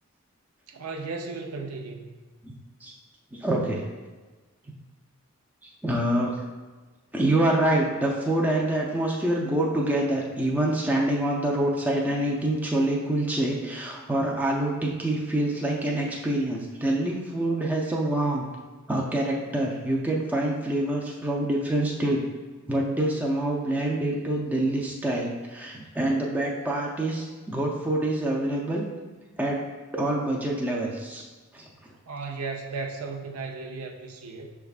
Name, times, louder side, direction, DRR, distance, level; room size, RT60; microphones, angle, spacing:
voice 1, 0.7-2.2 32.1-34.5, right 4 dB, 90° right, 2 dB, 0.6 m, -35 dB
voice 2, 3.3-3.8 4.7-4.8 5.6-6.4 7.1-18.4 18.9-22.2 22.7-28.8 29.4-29.6 29.9-31.2 31.5-31.7, right 1 dB, 10° right, -2 dB, 0.4 m, -26 dB
6.1 x 3.4 x 2.4 m, 1.3 s
head